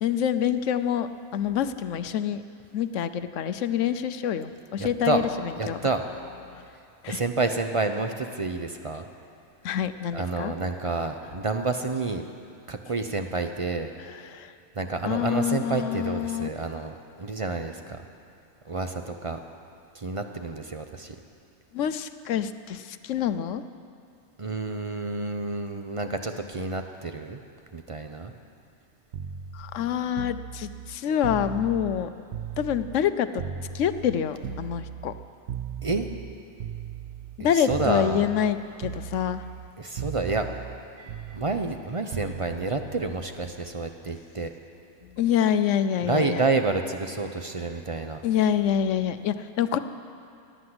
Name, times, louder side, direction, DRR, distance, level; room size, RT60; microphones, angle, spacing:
voice 1, 0.0-2.4 2.7-5.8 7.0-7.2 9.6-10.5 14.2-14.5 15.0-16.5 21.7-23.6 29.5-32.1 32.6-33.4 33.7-35.1 37.4-39.4 45.2-46.4 48.2-49.8, left 9 dB, 65° left, 12 dB, 0.9 m, -26 dB
voice 2, 4.8-5.2 5.6-6.0 7.1-9.1 10.1-12.3 12.7-13.9 14.8-18.0 18.7-19.4 19.9-21.2 24.4-27.4 27.7-28.3 35.8-36.1 37.4-38.3 39.8-40.5 41.3-44.5 46.0-48.2, right 3 dB, 35° right, 6 dB, 0.5 m, -29 dB
sound 1, 29.1-33.1 33.4-37.4 37.7-38.5 38.8-39.7 40.0-44.0 45.2-45.4, right 7 dB, 60° right, 0.9 m, -37 dB
17.5 x 10.5 x 7.9 m, 2.6 s
omnidirectional pair, 1.5 m